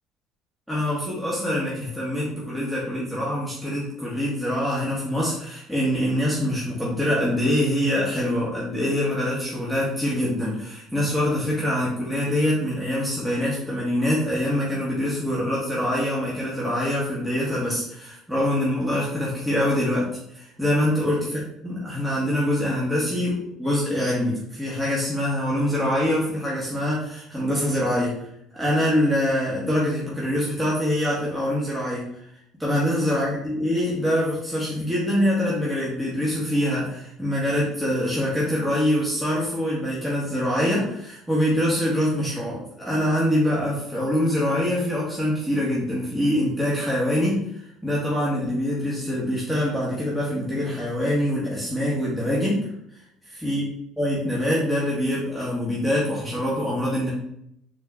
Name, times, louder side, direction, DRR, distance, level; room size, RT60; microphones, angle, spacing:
voice 1, 0.7-21.2 21.6-28.2 28.5-32.1 32.6-47.4 47.8-52.6 53.4-53.6 54.0-57.1, left 1 dB, 5° right, -6 dB, 1.2 m, -24 dB
4.2 x 3.2 x 2.3 m, 0.73 s
supercardioid pair, 90°, 0 cm